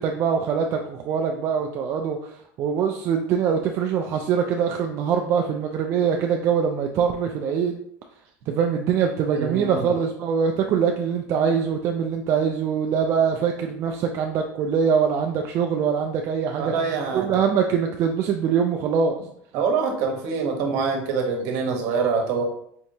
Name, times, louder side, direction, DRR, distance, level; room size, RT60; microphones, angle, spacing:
voice 1, 0.0-7.8 8.5-16.7 17.1-19.1, right 7 dB, 45° right, 3 dB, 0.3 m, -23 dB
voice 2, 9.3-9.9 16.6-17.3 19.5-22.4, right 5 dB, 65° right, 2 dB, 1.0 m, -25 dB
4.4 x 2.8 x 2.7 m, 0.68 s
supercardioid pair, 130°, 7 cm